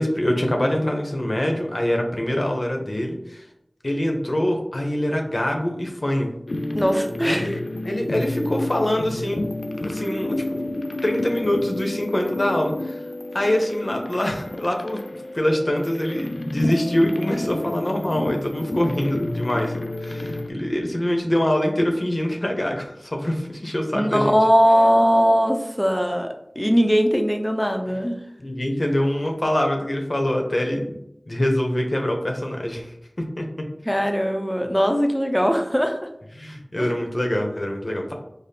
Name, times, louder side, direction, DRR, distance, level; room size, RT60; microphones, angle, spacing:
voice 1, 0.0-3.5 3.8-6.3 7.2-7.5 7.8-9.4 9.8-10.6 11.0-13.0 13.3-15.0 15.3-19.7 20.0-24.3 28.4-31.0 31.3-32.9 33.4-33.5 36.4-38.1, left 1 dB, 50° left, 2 dB, 0.7 m, -24 dB
sound 1, 6.5-20.5, left 1 dB, 75° left, 0.3 m, -30 dB
voice 2, 6.7-7.6 23.9-28.2 33.8-36.1 36.8-36.9, equal, 5° left, 4 dB, 0.5 m, -20 dB
5.1 x 2.0 x 2.7 m, 0.81 s
wide cardioid pair, 45°, 0 cm